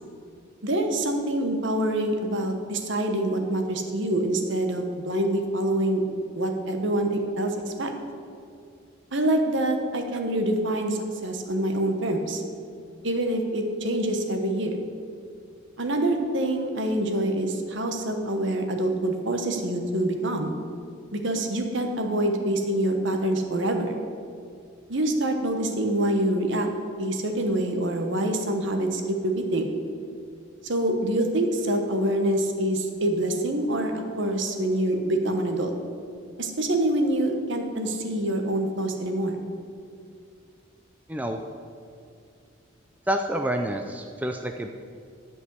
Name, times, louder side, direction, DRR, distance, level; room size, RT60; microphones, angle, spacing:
voice 1, 0.6-6.0 6.3-7.9 9.1-12.4 13.0-14.8 15.8-20.6 21.1-23.9 24.9-26.7 27.0-29.7 30.6-35.7 36.4-39.4, right 1 dB, 60° right, 4 dB, 1.2 m, -26 dB
voice 2, 41.1-41.4 43.1-44.7, right 1 dB, 5° right, 4 dB, 0.4 m, -28 dB
11.5 x 5.3 x 8.0 m, 2.4 s
head